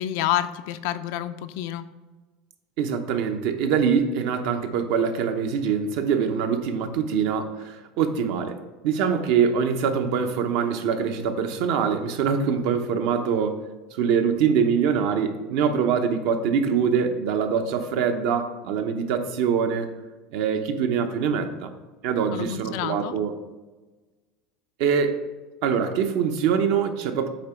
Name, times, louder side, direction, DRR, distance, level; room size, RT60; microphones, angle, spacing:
voice 1, 0.0-1.9 22.3-23.1, left 12 dB, 70° left, 11 dB, 0.4 m, -28 dB
voice 2, 2.8-13.6 13.9-19.9 20.3-21.7 22.0-23.3 24.8-25.2 25.6-27.3, right 6 dB, 70° right, 6 dB, 0.8 m, -24 dB
8.5 x 3.0 x 5.7 m, 1.2 s
supercardioid pair, 130°, 0 cm